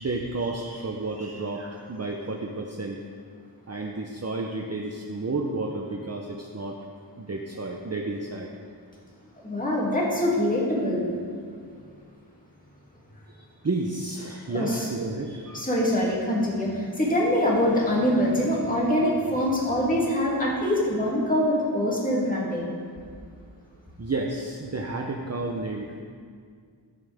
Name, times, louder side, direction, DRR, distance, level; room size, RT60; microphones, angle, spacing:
voice 1, 0.0-3.0 3.7-6.8 7.2-8.5 13.3-15.7 24.0-26.0, right 2 dB, 35° right, 0 dB, 0.8 m, -31 dB
voice 2, 9.4-11.1 14.5-14.8 15.5-22.7, left 1 dB, 20° left, -5 dB, 2.6 m, -24 dB
18.0 x 7.0 x 3.6 m, 2.1 s
wide cardioid pair, 75°, 45 cm